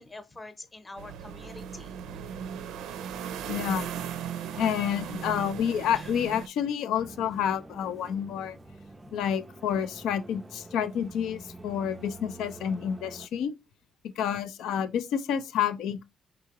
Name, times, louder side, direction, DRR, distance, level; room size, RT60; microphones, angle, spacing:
voice 1, 0.0-1.9 4.5-5.3 5.9-6.1, left 2 dB, 20° left, 0.8 m, -46 dB
sound 1, 1.0-6.5, right 8 dB, 85° right, 0.4 m, -37 dB
voice 2, 3.5-3.9 4.6-8.6 9.1-13.5 14.2-16.0, left 8 dB, 85° left, 0.5 m, -29 dB
sound 2, 7.0-13.3, right 2 dB, 20° right, 0.4 m, -47 dB
4.7 x 3.6 x 2.9 m
cardioid pair, 90°, 0 cm